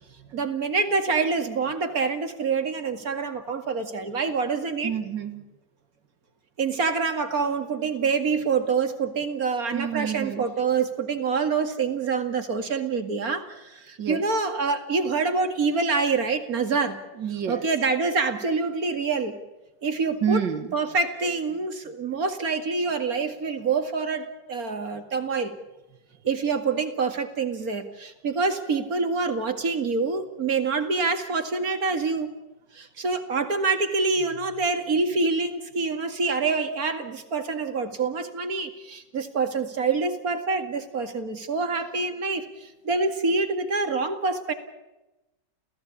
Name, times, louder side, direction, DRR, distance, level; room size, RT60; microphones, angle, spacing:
voice 1, 0.3-4.9 6.6-17.0 17.5-19.4 19.8-20.4 20.7-25.6 26.2-32.3 32.7-44.5, right 4 dB, 55° right, 7 dB, 2.6 m, -26 dB
voice 2, 4.8-5.4 9.7-10.4 14.0-14.2 17.2-17.7 20.2-20.7, right 8 dB, 85° right, 9 dB, 2.5 m, -28 dB
29.5 x 16.0 x 8.5 m, 1.0 s
omnidirectional pair, 1.9 m